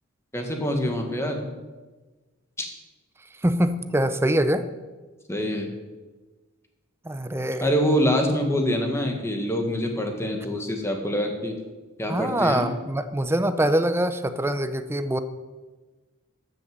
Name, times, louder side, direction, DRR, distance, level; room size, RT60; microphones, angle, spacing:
voice 1, 0.3-1.5 2.6-2.7 5.3-5.7 7.6-11.5 12.0-12.7, equal, 15° left, 3 dB, 1.6 m, -25 dB
voice 2, 3.4-4.7 7.0-7.7 12.1-15.2, right 1 dB, 10° right, 10 dB, 0.6 m, -24 dB
12.5 x 6.6 x 7.6 m, 1.3 s
head